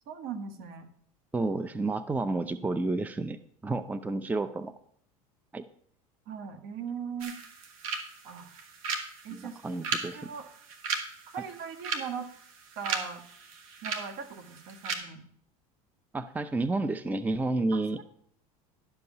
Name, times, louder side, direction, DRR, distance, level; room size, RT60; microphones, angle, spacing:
voice 1, 0.1-0.9 6.3-7.3 8.2-8.5 9.2-9.6 10.1-10.5 11.3-12.3 12.8-13.2 13.8-15.2 17.7-18.0, right 7 dB, 60° right, 7 dB, 1.7 m, -39 dB
voice 2, 1.3-3.4 3.6-4.7 5.5-5.6 9.3-10.3 16.1-18.0, right 2 dB, 10° right, 12 dB, 0.5 m, -30 dB
sound 1, 7.2-15.0, right 5 dB, 75° right, 1.8 m, -37 dB
11.5 x 5.4 x 6.7 m, 0.64 s
hypercardioid pair, 90°, 18 cm